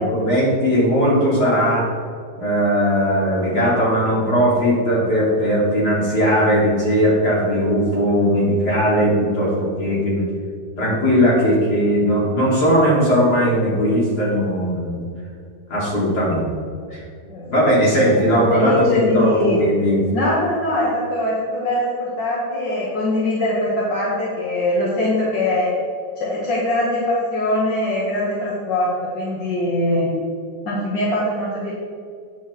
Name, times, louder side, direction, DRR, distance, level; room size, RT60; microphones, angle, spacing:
voice 1, 0.0-1.9 2.4-10.3 10.8-15.0 15.7-16.5 16.9-17.0 17.5-20.0, equal, 60° left, -6 dB, 3.0 m, -18 dB
voice 2, 18.0-19.6 20.1-25.7 26.2-30.1 30.7-31.7, left 1 dB, 85° left, -6 dB, 2.0 m, -22 dB
9.1 x 7.4 x 3.1 m, 2.2 s
omnidirectional pair, 1.9 m